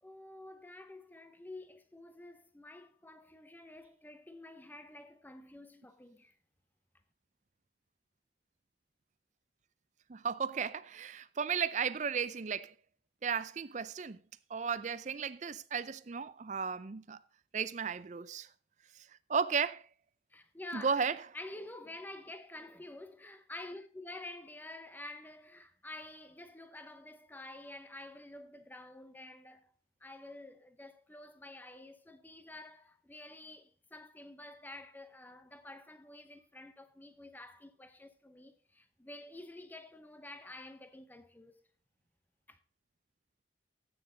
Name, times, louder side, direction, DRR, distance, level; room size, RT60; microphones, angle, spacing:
voice 1, 0.0-6.3 20.3-21.1 21.3-29.7 30.0-41.6 42.5-42.6, left 2 dB, 10° left, 0.7 m, -49 dB
voice 2, 10.1-12.7 13.2-14.2 14.5-17.2 17.5-18.5 19.3-19.9 20.7-21.2, right 6 dB, 40° right, 0.5 m, -34 dB
14.0 x 8.9 x 3.9 m
head